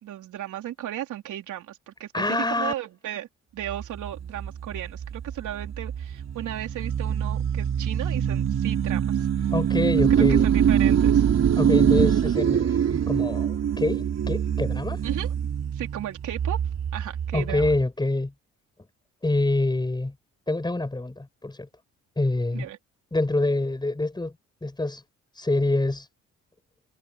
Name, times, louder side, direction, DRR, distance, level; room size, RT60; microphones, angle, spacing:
voice 1, 0.0-3.3 3.5-9.5 10.1-11.3 15.0-15.3 15.7-16.6 16.9-17.7 22.5-22.8, right 12 dB, 75° right, 4.0 m, -35 dB
voice 2, 2.1-2.7 9.5-10.5 11.6-15.0 17.3-18.3 19.2-20.1 20.5-21.7 22.2-22.7 23.1-24.3 24.6-25.0 25.4-26.1, left 2 dB, 15° left, 6.2 m, -26 dB
sound 1, 3.7-17.8, right 9 dB, 55° right, 4.3 m, -24 dB
cardioid pair, 90°, 30 cm